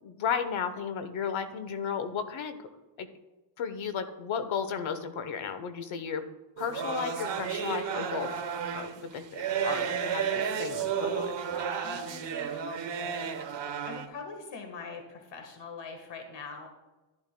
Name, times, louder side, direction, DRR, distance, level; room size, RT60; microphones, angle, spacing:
voice 1, 0.0-2.6 3.0-3.1 3.6-6.2 6.6-8.4 8.7-11.3, left 7 dB, 80° left, 10 dB, 1.0 m, -34 dB
sound 1, 6.6-14.1, right 7 dB, 60° right, 1.0 m, -32 dB
voice 2, 11.8-12.6 13.9-16.7, left 4 dB, 65° left, 4 dB, 1.4 m, -43 dB
10.5 x 10.5 x 2.2 m, 1.1 s
cardioid pair, 75°, 47 cm